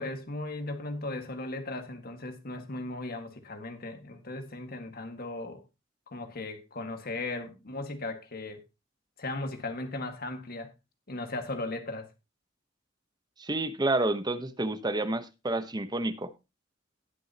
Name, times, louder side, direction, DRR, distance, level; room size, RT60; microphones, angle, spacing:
voice 1, 0.0-5.6 6.1-8.6 9.2-10.7 11.1-12.1, left 2 dB, 50° left, 1.7 m, -37 dB
voice 2, 13.4-16.3, right 2 dB, 20° right, 0.9 m, -29 dB
18.5 x 6.3 x 2.9 m
head